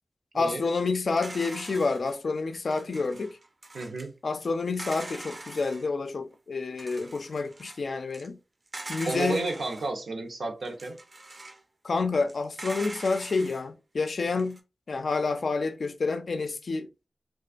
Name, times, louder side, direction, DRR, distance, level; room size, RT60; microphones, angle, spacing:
voice 1, 0.3-3.4 4.2-8.4 8.9-9.5 11.8-14.6 14.9-16.9, left 4 dB, 70° left, 0.3 m, -29 dB
sound 1, 1.1-2.2 2.7-4.1 4.4-4.5 4.7-5.9 6.3-6.4 6.8-7.8 8.1-8.3 8.7-9.9 10.6-11.6 12.2-13.6 14.1-14.6, right 2 dB, 45° right, 0.4 m, -43 dB
voice 2, 3.7-4.1 9.1-11.0, right 2 dB, 85° right, 0.6 m, -32 dB
2.4 x 2.3 x 2.4 m
cardioid pair, 55°, 0 cm